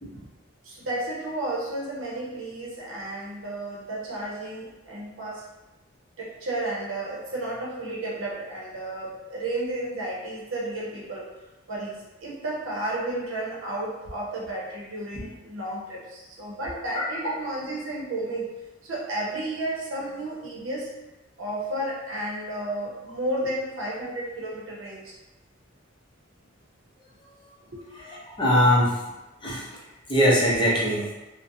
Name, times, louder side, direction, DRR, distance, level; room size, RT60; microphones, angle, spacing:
voice 1, 0.6-5.4 6.2-11.3 11.7-18.5 18.8-20.9 21.4-25.1 27.6-27.8, right 1 dB, 75° right, -4 dB, 0.7 m, -32 dB
voice 2, 28.1-28.9 29.4-29.6 30.1-31.1, equal, 25° left, -5 dB, 0.6 m, -21 dB
2.6 x 2.1 x 2.6 m, 1.0 s
head